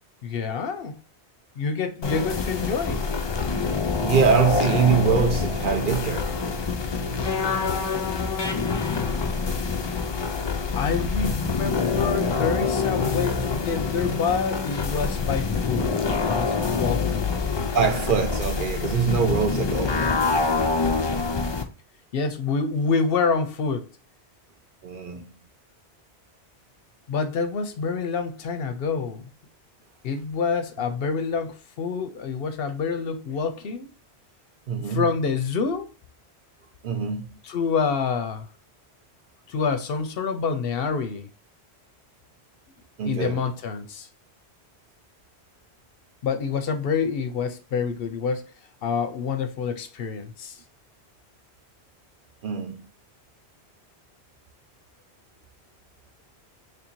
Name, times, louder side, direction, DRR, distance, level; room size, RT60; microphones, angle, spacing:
voice 1, 0.2-1.0 1.6-3.0 10.7-17.3 22.1-23.9 27.1-29.3 30.0-33.9 34.8-35.9 37.4-38.5 39.5-41.3 43.0-44.1 46.2-48.5 48.8-50.6, left 5 dB, 65° left, 0.7 m, -27 dB
sound 1, 2.0-21.6, left 4 dB, 45° left, 0.3 m, -26 dB
voice 2, 4.0-6.4 17.5-20.1 24.8-25.3 34.7-35.2 36.8-37.4 43.0-43.4 52.4-52.8, right 6 dB, 60° right, 0.7 m, -24 dB
3.2 x 2.7 x 4.4 m
omnidirectional pair, 1.1 m